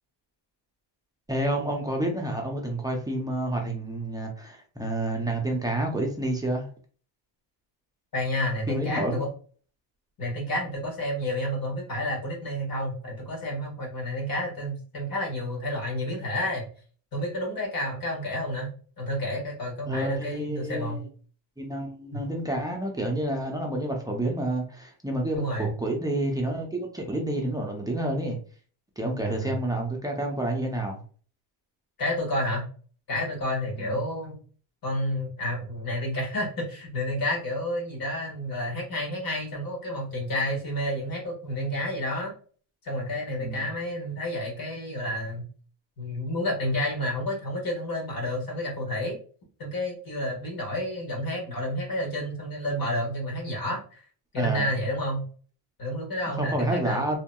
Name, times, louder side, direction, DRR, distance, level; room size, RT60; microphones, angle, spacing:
voice 1, 1.3-6.7 8.7-9.3 19.9-21.1 21.6-28.4 29.0-31.0 33.8-34.0 43.4-43.7 54.4-54.7 56.4-57.2, right 1 dB, 10° right, 0.5 m, -29 dB
voice 2, 8.1-9.3 10.2-16.6 17.1-18.7 19.0-21.0 22.1-22.2 25.4-25.7 29.2-29.6 32.0-32.6 33.1-34.4 34.8-42.3 42.8-45.5 46.0-49.2 49.6-53.8 54.3-55.2 55.8-57.0, left 1 dB, 45° left, 1.4 m, -30 dB
2.8 x 2.6 x 2.2 m
cardioid pair, 115°, 48 cm